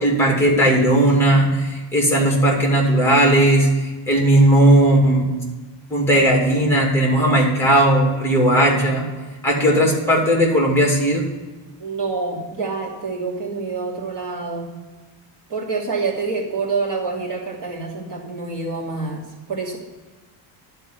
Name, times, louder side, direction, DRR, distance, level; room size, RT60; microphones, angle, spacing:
voice 1, 0.0-5.3 5.9-9.1 9.4-11.3, right 1 dB, 5° left, 0 dB, 2.5 m, -16 dB
voice 2, 11.8-14.7 15.5-19.8, right 4 dB, 40° right, -4 dB, 2.9 m, -27 dB
11.5 x 4.5 x 6.8 m, 1.3 s
cardioid pair, 155°, 46 cm